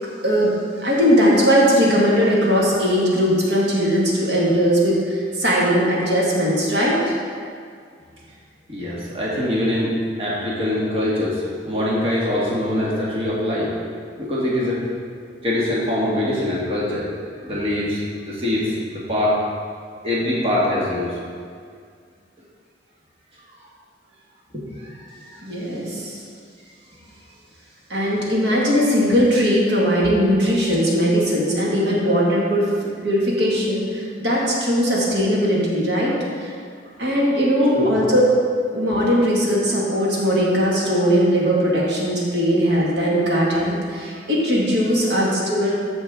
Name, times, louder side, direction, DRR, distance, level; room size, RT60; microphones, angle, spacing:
voice 1, 0.2-0.5 0.8-7.1 25.4-26.2 27.9-36.5 37.0-38.2 38.7-45.7, equal, 80° right, -5 dB, 2.0 m, -19 dB
voice 2, 8.7-13.7 14.2-14.8 15.4-17.1 17.4-19.4 20.0-21.2 24.9-25.4 37.7-37.9, left 1 dB, 35° right, -7 dB, 1.7 m, -23 dB
14.0 x 5.4 x 3.7 m, 2.1 s
head